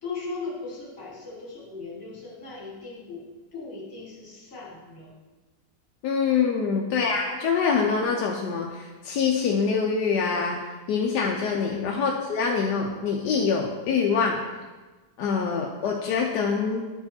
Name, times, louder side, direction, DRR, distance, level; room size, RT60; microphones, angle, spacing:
voice 1, 0.0-5.1 6.4-7.0 11.5-11.9, left 3 dB, 55° left, -5 dB, 2.7 m, -38 dB
voice 2, 6.0-10.6 10.9-14.4 15.2-16.8, left 5 dB, 85° left, 0 dB, 1.3 m, -25 dB
10.5 x 4.6 x 4.3 m, 1.2 s
omnidirectional pair, 1.7 m